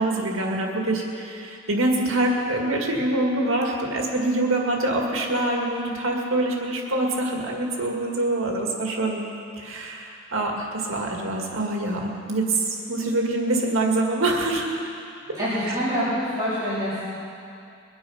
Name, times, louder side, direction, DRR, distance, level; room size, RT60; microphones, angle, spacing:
voice 1, 0.0-9.3 9.6-14.7 15.7-15.8, right 2 dB, 80° right, 0 dB, 2.0 m, -25 dB
voice 2, 15.3-17.0, equal, 15° right, -13 dB, 3.3 m, -26 dB
22.0 x 9.5 x 5.6 m, 2.5 s
head